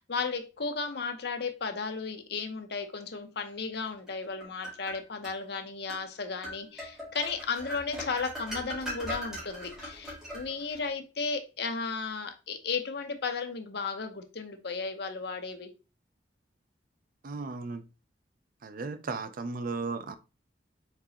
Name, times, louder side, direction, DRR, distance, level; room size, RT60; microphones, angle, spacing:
voice 1, 0.0-15.7, left 4 dB, 60° left, 0.7 m, -34 dB
sound 1, 4.1-5.4 5.9-6.1 6.4-10.9, equal, 5° right, 1.9 m, -40 dB
voice 2, 17.2-17.8 18.6-20.2, right 4 dB, 50° right, 0.4 m, -35 dB
4.5 x 3.9 x 2.8 m
head